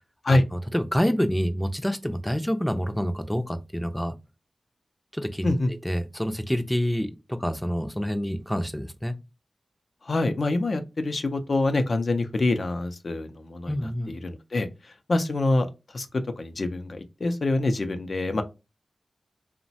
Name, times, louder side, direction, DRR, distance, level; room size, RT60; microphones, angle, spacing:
voice 1, 0.3-4.1 5.1-5.5 5.8-9.1 13.7-14.1, equal, 5° left, 0.4 m, -27 dB
voice 2, 10.1-13.7 14.1-14.7 15.1-15.7 15.9-16.1 16.4-18.4, left 2 dB, 65° left, 0.4 m, -25 dB
2.9 x 2.1 x 2.7 m
cardioid pair, 50°, 0 cm